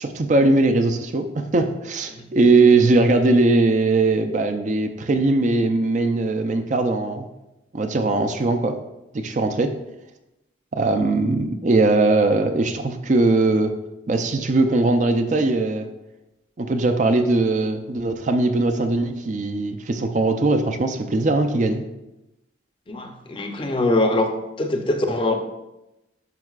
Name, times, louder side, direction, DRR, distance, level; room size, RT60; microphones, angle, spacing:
voice 1, 0.0-7.3 7.7-8.8 9.1-9.8 10.7-13.8 14.1-15.9 16.6-21.8, right 2 dB, 40° right, 7 dB, 0.4 m, -20 dB
voice 2, 22.9-24.3 24.6-25.4, left 2 dB, 25° left, 4 dB, 0.6 m, -23 dB
10.5 x 5.5 x 2.4 m, 0.95 s
head